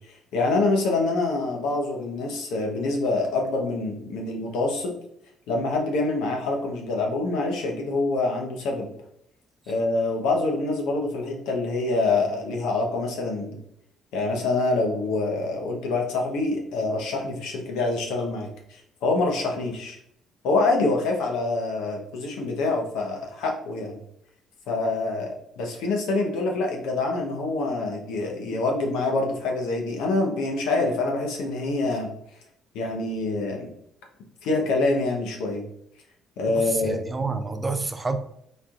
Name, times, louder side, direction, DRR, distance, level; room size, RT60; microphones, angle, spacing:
voice 1, 0.3-4.9 5.5-8.9 9.7-13.6 14.1-20.0 20.4-24.0 24.7-32.1 32.7-33.7 34.4-35.6 36.4-37.0, left 3 dB, 80° left, 1 dB, 1.0 m, -26 dB
voice 2, 36.5-38.2, right 3 dB, 25° right, 8 dB, 0.5 m, -28 dB
4.3 x 4.0 x 2.5 m, 0.74 s
supercardioid pair, 75°, 0 cm